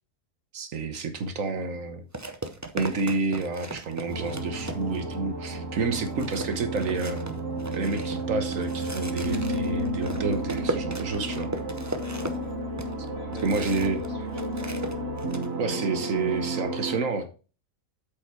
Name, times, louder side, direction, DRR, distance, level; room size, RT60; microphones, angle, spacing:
voice 1, 0.5-2.0 2.7-7.2 7.7-11.5 13.4-14.0 15.6-17.3, right 3 dB, 65° right, 8 dB, 1.4 m, -29 dB
sound 1, 1.2-1.3 2.1-5.1 5.6-5.7 5.9-14.1 14.3-15.5, right 2 dB, 20° right, 0.5 m, -37 dB
sound 2, 4.1-17.0, right 1 dB, 50° right, 1.6 m, -32 dB
voice 2, 11.8-12.6 13.1-14.8 15.7-15.8, left 3 dB, 55° left, 2 dB, 3.1 m, -44 dB
8.2 x 5.4 x 4.5 m, 0.35 s
omnidirectional pair, 1.5 m